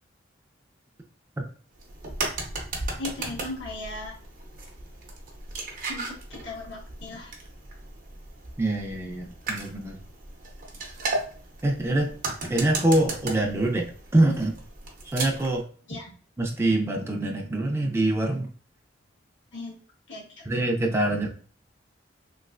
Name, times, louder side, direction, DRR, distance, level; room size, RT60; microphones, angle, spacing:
sound 1, 1.8-15.6, right 3 dB, 45° right, 0.7 m, -36 dB
voice 1, 3.0-4.1 5.9-7.3 15.9-16.1 19.5-19.8 20.1-20.5, left 2 dB, 85° left, -4 dB, 1.4 m, -37 dB
voice 2, 8.6-10.0 11.6-12.1 12.5-14.6 15.1-15.7 16.4-18.5 20.5-21.3, right 1 dB, 15° right, 1 dB, 0.4 m, -24 dB
3.1 x 2.8 x 2.4 m, 0.41 s
head